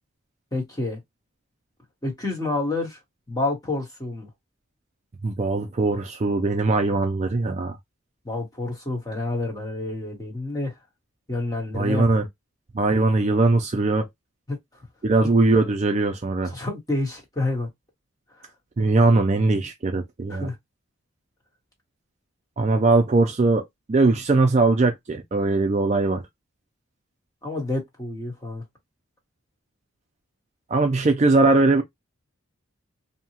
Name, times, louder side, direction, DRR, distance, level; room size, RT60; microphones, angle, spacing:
voice 1, 0.5-1.0 2.0-3.0 3.3-4.3 8.2-10.8 11.3-12.0 14.5-14.6 16.5-17.7 18.4-18.5 20.3-20.6 27.4-28.6, left 2 dB, 15° left, 1.1 m, -28 dB
voice 2, 5.2-7.8 11.7-12.2 12.7-14.1 15.0-16.5 18.8-20.5 22.6-26.2 30.7-31.8, right 3 dB, 30° right, 0.4 m, -20 dB
2.8 x 2.2 x 2.8 m
head